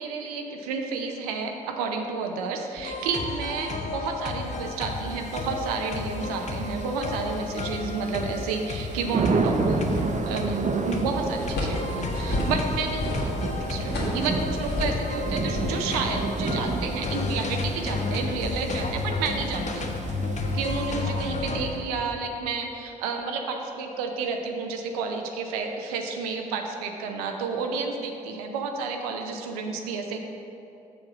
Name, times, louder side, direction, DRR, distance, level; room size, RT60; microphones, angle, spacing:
voice 1, 0.0-19.9 20.5-30.2, right 4 dB, 80° right, 3 dB, 0.5 m, -31 dB
sound 1, 2.8-21.6, left 3 dB, 40° left, 1.0 m, -32 dB
Thunder / Rain, 4.8-21.4, right 3 dB, 40° right, 0.8 m, -32 dB
sound 2, 9.9-10.6 10.9-15.1 15.5-17.2, left 1 dB, 60° left, 1.8 m, -32 dB
7.1 x 4.9 x 6.0 m, 2.8 s
hypercardioid pair, 40°, 19 cm